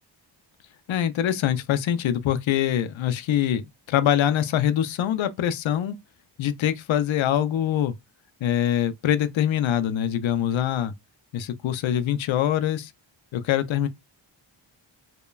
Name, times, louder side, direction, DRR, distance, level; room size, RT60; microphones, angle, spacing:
voice 1, 0.9-3.6 3.9-5.9 6.4-7.9 8.4-10.9 11.3-12.9 13.3-13.9, left 10 dB, 80° left, 0.5 m, -24 dB
3.0 x 2.2 x 2.2 m
wide cardioid pair, 180°, 46 cm